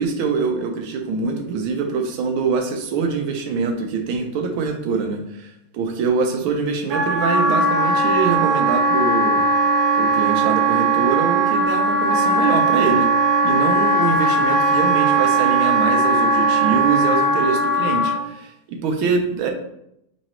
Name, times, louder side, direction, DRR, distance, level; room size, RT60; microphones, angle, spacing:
voice 1, 0.0-9.4 9.9-13.1 13.4-19.5, right 5 dB, 80° right, 4 dB, 1.5 m, -24 dB
Wind instrument woodwind instrument, 6.9-18.2, right 2 dB, 40° right, 1.4 m, -18 dB
3.8 x 3.1 x 4.2 m, 0.78 s
omnidirectional pair, 2.3 m